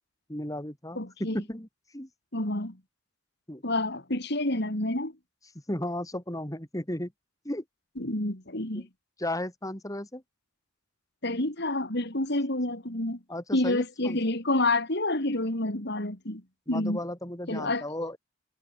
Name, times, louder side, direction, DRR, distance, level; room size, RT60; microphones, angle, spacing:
voice 1, 0.3-1.7 1.9-2.1 3.5-3.6 5.7-7.1 7.4-7.6 8.7-8.9 9.2-10.2 13.3-14.2 16.7-18.2, left 1 dB, 15° left, 4.5 m, -34 dB
voice 2, 1.0-1.4 2.3-2.8 3.6-5.1 8.0-8.9 11.2-13.2 13.5-16.4 16.7-17.0 17.5-17.9, left 2 dB, 55° left, 4.1 m, -28 dB
head